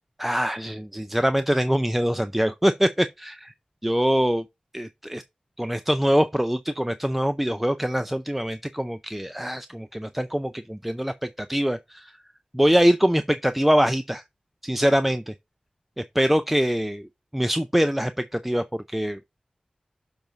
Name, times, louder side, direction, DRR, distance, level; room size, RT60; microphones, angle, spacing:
voice 1, 0.2-3.5 3.8-4.4 4.7-5.2 5.6-12.2 12.5-14.2 14.6-15.3 16.0-19.2, equal, 5° right, 0.5 m, -24 dB
7.0 x 4.0 x 5.3 m
wide cardioid pair, 60°, 2 cm